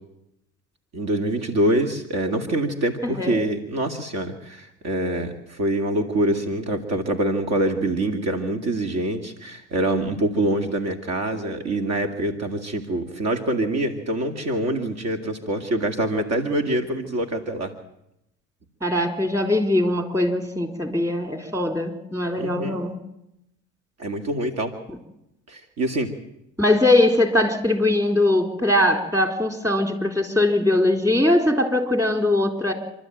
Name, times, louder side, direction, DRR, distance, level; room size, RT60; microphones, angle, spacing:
voice 1, 0.9-17.7 22.4-22.8 24.0-24.7 25.5-26.1, right 1 dB, 55° right, 6 dB, 2.3 m, -25 dB
voice 2, 3.0-3.4 18.8-23.0 26.6-32.7, left 1 dB, 10° right, 5 dB, 4.0 m, -21 dB
27.0 x 12.5 x 9.1 m, 0.84 s
supercardioid pair, 85°, 31 cm